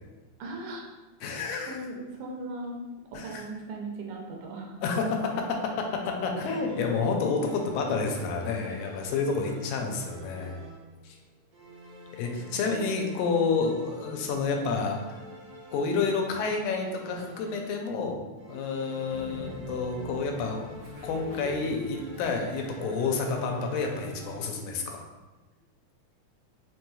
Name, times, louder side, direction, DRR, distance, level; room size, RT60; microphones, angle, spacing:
voice 1, 0.4-0.9 1.2-2.8 3.1-5.1 9.8-10.0 12.5-12.7 13.1-13.5, right 2 dB, 90° right, 0 dB, 2.1 m, -39 dB
voice 2, 1.2-1.8 3.2-3.4 4.8-5.2 5.8-10.6 11.0-11.2 12.2-15.0 15.7-18.2 18.5-20.7 21.0-25.0, left 4 dB, 85° left, 2 dB, 2.0 m, -29 dB
sound 1, 6.4-10.5, equal, 55° left, 0.5 m, -47 dB
sound 2, 7.4-11.1 11.5-18.0 18.4-24.8, left 1 dB, 70° right, 1.5 m, -47 dB
Train, 19.1-24.4, right 1 dB, 55° right, 2.5 m, -44 dB
5.2 x 3.0 x 2.2 m, 1.2 s
omnidirectional pair, 3.5 m